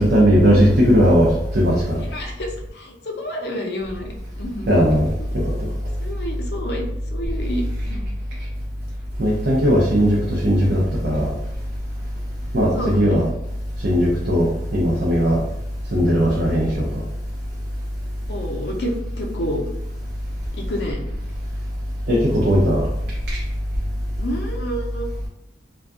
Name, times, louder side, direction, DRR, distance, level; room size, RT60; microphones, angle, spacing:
voice 1, 0.0-2.0 4.7-5.1 9.2-11.3 12.5-13.2 13.8-15.4 15.9-17.0 22.1-22.9, equal, 60° right, -5 dB, 0.5 m, -17 dB
voice 2, 2.0-4.1 4.4-4.7 5.5-5.6 6.0-6.8 7.1-7.6 7.9-8.0 12.7-13.3 18.3-19.6 20.5-21.1 24.2-25.1, equal, 65° left, 0 dB, 0.5 m, -29 dB
2.5 x 2.2 x 2.3 m, 0.87 s
head